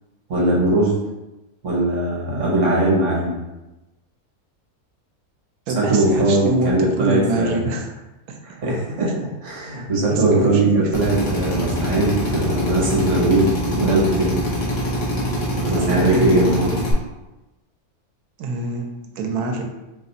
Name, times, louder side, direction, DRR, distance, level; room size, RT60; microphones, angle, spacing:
voice 1, 0.3-0.9 1.6-3.3 5.7-7.6 8.4-14.4 15.6-16.7, right 1 dB, 55° right, -5 dB, 1.3 m, -20 dB
voice 2, 5.7-7.9 8.3-8.4 10.1-10.9 15.7-16.5 18.4-18.8 19.2-19.6, right 2 dB, 90° right, 2 dB, 1.1 m, -25 dB
Drill, 10.9-16.9, equal, 55° left, 1.2 m, -24 dB
2.8 x 2.4 x 3.9 m, 1.0 s
omnidirectional pair, 1.6 m